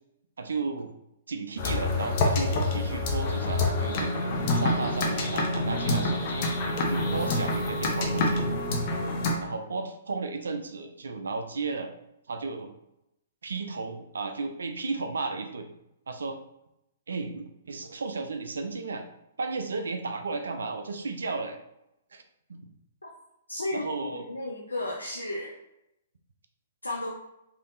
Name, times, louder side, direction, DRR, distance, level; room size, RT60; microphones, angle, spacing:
voice 1, 0.4-0.9 1.3-4.1 4.5-6.5 6.9-8.5 9.4-11.9 12.3-12.7 13.4-15.7 16.1-16.4 17.1-19.0 19.4-21.6 22.1-22.2 22.5-22.6 23.7-24.2, right 4 dB, 70° right, 6 dB, 0.4 m, -34 dB
sound 1, 1.6-9.3, left 2 dB, 45° left, 0.7 m, -27 dB
voice 2, 23.5-23.9 24.1-25.5 26.8-27.1, left 1 dB, 90° left, -2 dB, 0.4 m, -33 dB
3.4 x 2.7 x 2.6 m, 0.84 s
figure-of-eight pair, 115°, 0 cm